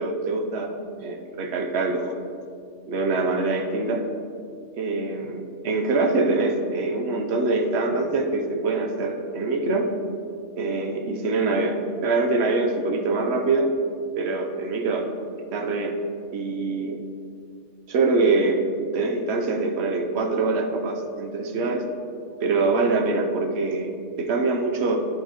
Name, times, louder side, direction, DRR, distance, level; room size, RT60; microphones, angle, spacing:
voice 1, 0.0-2.1 2.9-4.0 4.7-9.9 10.6-13.7 14.2-15.1 15.5-16.0 16.3-17.0 17.9-18.6 18.9-21.8 22.4-25.0, right 3 dB, 60° right, 2 dB, 1.0 m, -24 dB
13.0 x 4.4 x 3.1 m, 2.4 s
omnidirectional pair, 1.3 m